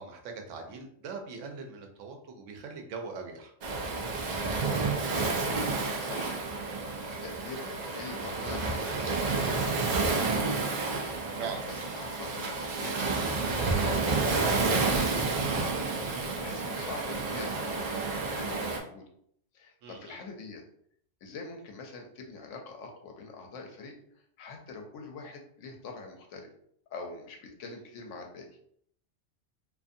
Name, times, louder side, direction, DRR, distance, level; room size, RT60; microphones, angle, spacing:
voice 1, 0.0-3.5 11.3-11.6 19.8-20.2, right 4 dB, 80° right, 3 dB, 0.9 m, -41 dB
Waves surf, 3.6-18.8, right 3 dB, 65° right, 0.4 m, -30 dB
voice 2, 4.6-5.4 6.0-6.3 7.2-10.7 11.7-15.6 16.4-19.0 19.5-20.6 21.2-23.9 24.4-26.5 26.9-28.5, left 4 dB, 80° left, 2 dB, 0.9 m, -44 dB
2.5 x 2.5 x 2.6 m, 0.67 s
omnidirectional pair, 1.3 m